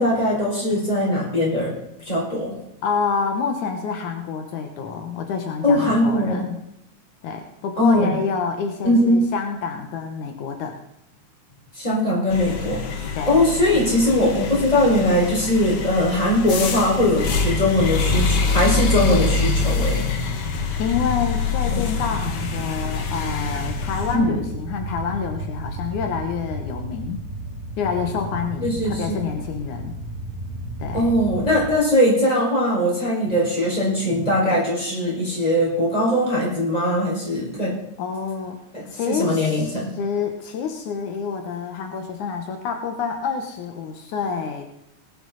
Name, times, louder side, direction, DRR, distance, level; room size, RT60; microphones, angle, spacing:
voice 1, 0.0-1.7 2.1-2.5 5.6-6.5 7.8-8.2 8.8-9.2 11.7-20.0 21.7-21.8 24.1-24.3 28.6-29.2 30.9-37.8 38.7-39.9, left 1 dB, 10° left, -4 dB, 4.7 m, -20 dB
voice 2, 2.8-6.6 7.2-10.8 13.1-13.4 20.8-27.2 27.8-29.9 30.8-31.2 38.0-38.6 38.9-44.6, left 6 dB, 75° left, 5 dB, 2.6 m, -28 dB
sound 1, 12.3-24.2, left 4 dB, 55° left, 1.2 m, -25 dB
sound 2, 17.2-31.7, right 1 dB, 30° right, 4.1 m, -33 dB
19.5 x 10.0 x 4.1 m, 0.75 s
omnidirectional pair, 3.6 m